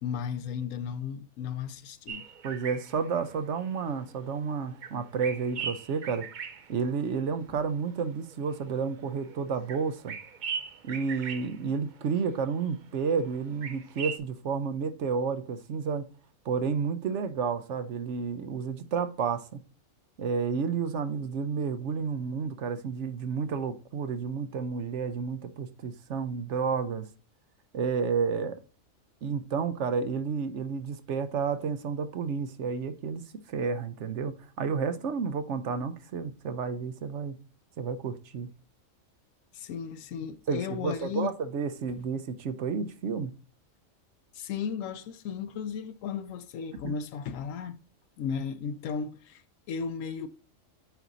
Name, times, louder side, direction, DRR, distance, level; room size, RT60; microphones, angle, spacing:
voice 1, 0.0-2.2 39.5-41.3 44.3-47.8 48.2-50.3, left 7 dB, 85° left, 1.0 m, -35 dB
sound 1, 2.1-4.5 4.7-7.5 7.8-12.8 13.1-14.2, right 6 dB, 50° right, 0.6 m, -40 dB
voice 2, 2.4-6.3 6.7-10.1 10.8-16.1 16.5-19.4 20.2-27.1 27.7-28.6 29.2-37.4 37.8-38.5 40.5-43.3 46.8-47.0, right 5 dB, 65° right, 1.0 m, -31 dB
9.1 x 4.2 x 3.9 m
omnidirectional pair, 1.3 m